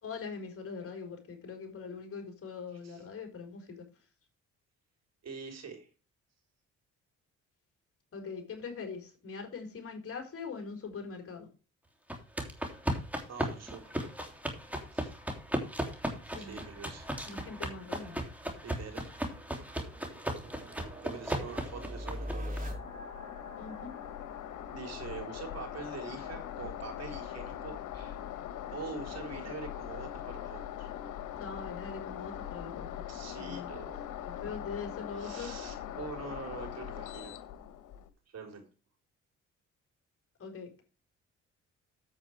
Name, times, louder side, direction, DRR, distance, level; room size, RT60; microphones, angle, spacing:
voice 1, 0.0-3.8 8.1-11.5 16.3-16.6 17.2-18.2 23.6-23.9 31.4-32.9 33.4-33.7 34.4-35.5 40.4-40.8, left 5 dB, 50° left, 3 dB, 4.3 m, -42 dB
voice 2, 5.2-5.9 13.3-14.0 14.9-15.1 16.4-17.1 18.6-19.1 21.0-22.5 24.7-28.2 28.7-30.9 33.1-34.0 35.2-37.4 38.3-38.6, right 5 dB, 55° right, 4 dB, 4.0 m, -44 dB
sound 1, 12.1-22.6, equal, 5° right, 3.1 m, -36 dB
sound 2, 18.9-25.5, left 1 dB, 30° right, 4.8 m, -44 dB
sound 3, 22.6-38.1, left 11 dB, 80° left, 1.3 m, -41 dB
9.1 x 8.3 x 4.7 m, 0.35 s
cardioid pair, 90°, 30 cm